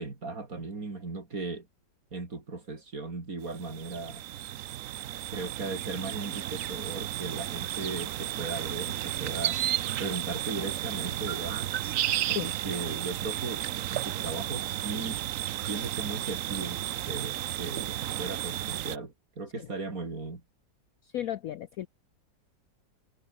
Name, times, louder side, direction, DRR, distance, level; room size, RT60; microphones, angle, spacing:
voice 1, 0.0-1.7 2.1-4.2 5.3-9.6 10.0-11.7 12.3-13.6 13.9-15.2 15.7-20.4, right 3 dB, 50° right, 4.0 m, -37 dB
sound 1, 3.4-19.0, right 12 dB, 65° right, 0.8 m, -33 dB
voice 2, 21.1-21.9, left 12 dB, 65° left, 0.9 m, -34 dB
omnidirectional pair, 2.0 m